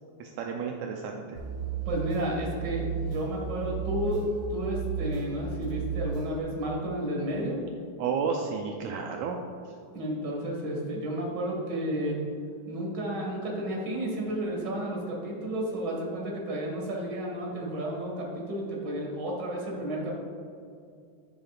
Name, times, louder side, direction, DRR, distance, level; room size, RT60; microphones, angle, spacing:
voice 1, 0.2-1.4 8.0-9.4, right 6 dB, 80° right, 1 dB, 1.9 m, -31 dB
sound 1, 1.3-6.4, right 6 dB, 60° right, 3.3 m, -34 dB
voice 2, 1.9-4.2 4.5-7.6 9.9-12.2 12.7-20.1, right 1 dB, 40° right, -2 dB, 2.1 m, -32 dB
12.5 x 7.0 x 2.4 m, 2.4 s
omnidirectional pair, 3.3 m